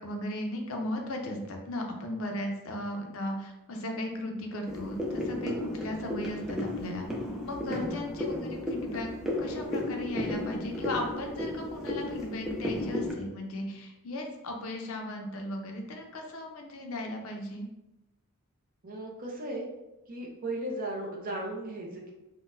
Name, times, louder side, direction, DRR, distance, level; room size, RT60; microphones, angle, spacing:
voice 1, 0.0-7.0 7.5-9.1 9.4-17.7, left 1 dB, 65° left, 3 dB, 0.5 m, -36 dB
sound 1, 4.6-13.1, left 1 dB, ahead, 0.4 m, -34 dB
voice 2, 7.7-8.0 18.8-19.7 20.1-22.1, right 1 dB, 40° right, -2 dB, 0.6 m, -36 dB
3.7 x 2.1 x 2.6 m, 0.94 s
head